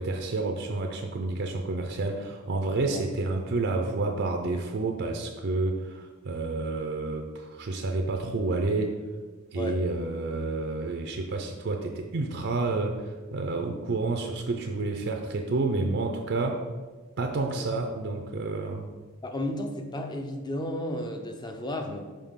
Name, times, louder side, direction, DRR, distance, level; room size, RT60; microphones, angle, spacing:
voice 1, 0.0-9.0 9.5-16.6 17.2-18.9, right 3 dB, 55° right, 4 dB, 0.5 m, -29 dB
voice 2, 19.2-22.0, left 1 dB, 20° left, 4 dB, 0.6 m, -33 dB
5.6 x 5.2 x 3.6 m, 1.4 s
head